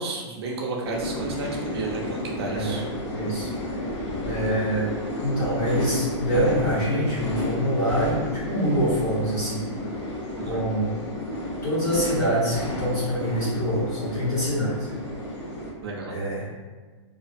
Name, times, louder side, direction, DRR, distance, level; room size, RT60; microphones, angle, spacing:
voice 1, 0.0-2.9 10.3-10.6 15.8-16.2, right 3 dB, 60° right, -1 dB, 0.5 m, -32 dB
sound 1, 0.9-15.7, left 1 dB, 75° left, 0.7 m, -31 dB
voice 2, 2.5-2.8 3.1-3.5 4.2-4.9 5.2-8.1 8.5-9.6 10.5-11.0 11.6-14.7 16.0-16.6, equal, 20° left, -10 dB, 1.0 m, -25 dB
2.6 x 2.1 x 2.5 m, 1.3 s
hypercardioid pair, 165°, 15 cm